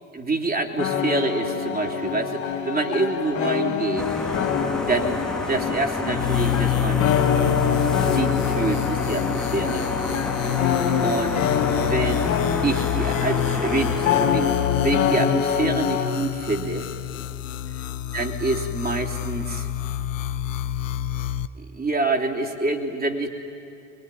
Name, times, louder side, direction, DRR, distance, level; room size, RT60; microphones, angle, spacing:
voice 1, 0.1-4.1 4.9-7.1 8.0-9.9 11.0-11.4 11.7-12.3 12.6-16.9 18.1-19.7 21.7-23.3, right 3 dB, 25° right, 2 dB, 3.2 m, -27 dB
sound 1, 0.8-16.2, left 7 dB, 50° left, 2.6 m, -25 dB
sound 2, 4.0-15.2, left 1 dB, ahead, 1.7 m, -32 dB
sound 3, 6.1-21.5, left 11 dB, 85° left, 0.8 m, -28 dB
25.5 x 22.5 x 9.9 m, 2.6 s
hypercardioid pair, 70°, 38 cm